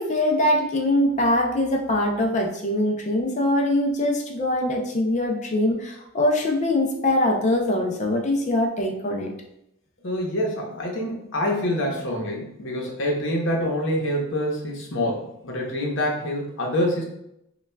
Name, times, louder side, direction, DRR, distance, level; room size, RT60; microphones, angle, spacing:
voice 1, 0.0-9.3, left 1 dB, 35° left, 1 dB, 0.5 m, -23 dB
voice 2, 10.0-17.0, left 1 dB, 65° left, 0 dB, 0.9 m, -26 dB
5.4 x 2.3 x 2.2 m, 0.80 s
head